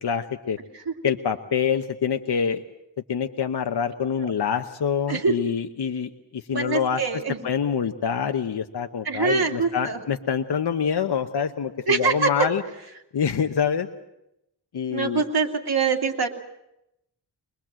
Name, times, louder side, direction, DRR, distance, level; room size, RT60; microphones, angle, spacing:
voice 1, 0.0-0.6 1.0-2.6 3.1-7.0 7.4-12.6 13.1-13.9 14.7-15.2, left 7 dB, 65° left, 7 dB, 1.0 m, -26 dB
voice 2, 6.5-7.4 9.0-10.0 11.9-12.5 14.9-16.3, right 5 dB, 60° right, 2 dB, 2.7 m, -24 dB
23.5 x 21.0 x 7.6 m, 0.86 s
wide cardioid pair, 85°, 42 cm